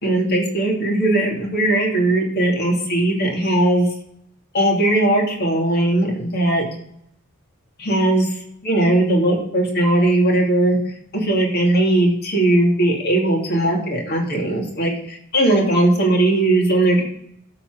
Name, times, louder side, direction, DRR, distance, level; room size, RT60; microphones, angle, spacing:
voice 1, 0.0-3.9 4.5-6.7 7.8-8.3 8.6-10.8 11.1-17.0, right 1 dB, 50° left, -1 dB, 2.6 m, -18 dB
13.0 x 4.3 x 6.3 m, 0.72 s
head